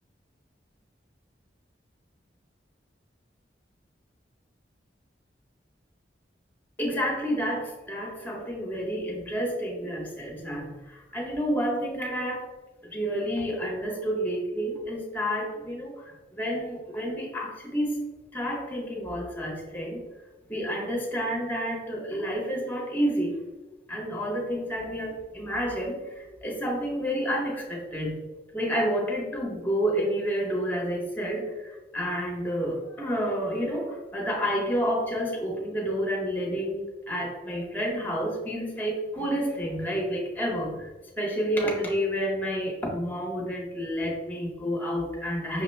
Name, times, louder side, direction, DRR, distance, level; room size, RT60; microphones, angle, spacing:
voice 1, 6.8-12.5 12.8-20.0 20.5-23.4 23.9-28.2 28.5-40.9 41.2-45.6, equal, 10° left, -1 dB, 0.8 m, -30 dB
5.9 x 2.1 x 3.1 m, 1.2 s
head